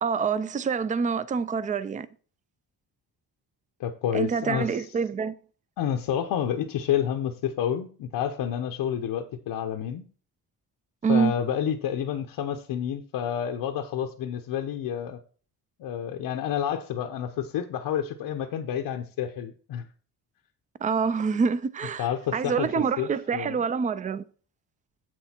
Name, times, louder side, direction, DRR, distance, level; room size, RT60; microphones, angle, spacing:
voice 1, 0.0-2.1 4.1-5.3 11.0-11.3 20.8-24.3, right 5 dB, 20° right, 0.4 m, -26 dB
voice 2, 3.8-4.8 5.8-10.0 11.1-15.2 15.8-19.9 22.0-22.7 23.0-23.6, left 9 dB, 80° left, 0.9 m, -29 dB
7.9 x 6.2 x 4.4 m
cardioid pair, 140°, 40 cm